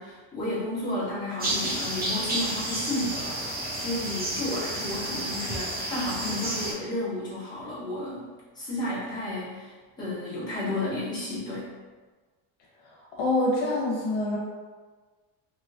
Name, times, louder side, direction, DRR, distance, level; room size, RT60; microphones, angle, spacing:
voice 1, 0.0-11.7, left 1 dB, 10° left, -12 dB, 1.3 m, -32 dB
sound 1, 1.4-6.7, right 1 dB, 20° right, 0.6 m, -31 dB
voice 2, 13.1-14.4, left 2 dB, 70° left, -4 dB, 1.0 m, -25 dB
3.0 x 2.9 x 2.5 m, 1.4 s
cardioid pair, 145°, 42 cm